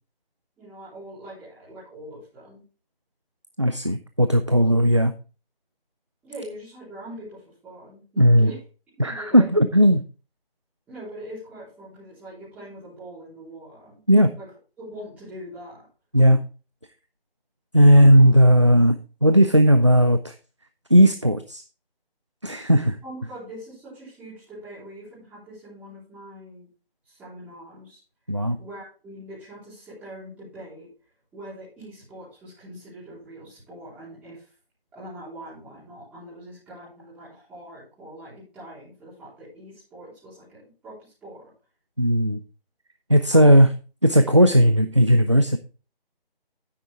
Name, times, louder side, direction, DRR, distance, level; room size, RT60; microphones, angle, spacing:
voice 1, 0.6-2.6 6.2-8.6 9.0-9.5 10.9-14.0 14.4-14.5 14.8-15.9 23.0-26.7 27.1-28.0 28.6-30.9 31.3-34.4 34.9-41.4 43.3-43.6, right 1 dB, 5° right, -13 dB, 3.9 m, -42 dB
voice 2, 3.6-5.1 8.2-8.5 9.0-10.0 14.1-14.3 16.1-16.4 17.7-20.3 20.9-21.6 22.4-23.0 28.3-28.6 42.0-42.4 43.1-43.7 44.0-45.6, equal, 30° right, 9 dB, 0.4 m, -16 dB
9.4 x 7.8 x 3.8 m, 0.35 s
figure-of-eight pair, 160°, 30 cm